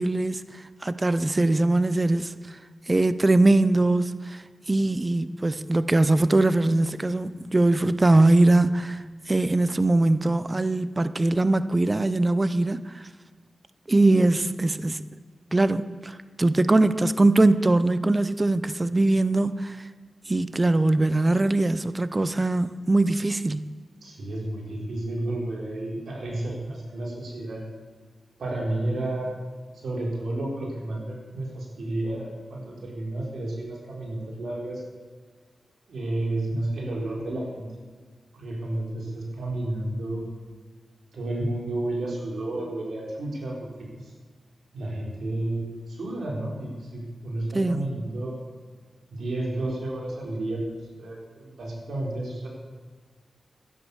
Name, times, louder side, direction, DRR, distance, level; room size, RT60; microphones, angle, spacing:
voice 1, 0.0-2.6 2.9-13.1 13.9-15.1 15.5-19.9 20.3-23.7 47.5-47.9, right 2 dB, 30° right, 0.6 m, -22 dB
voice 2, 24.0-27.6 28.4-29.3 29.8-34.8 35.9-37.7 38.3-40.3 41.1-44.1 44.7-48.3 49.1-52.5, right 1 dB, 80° right, 3.9 m, -31 dB
12.0 x 11.0 x 7.0 m
cardioid pair, 70°, 0 cm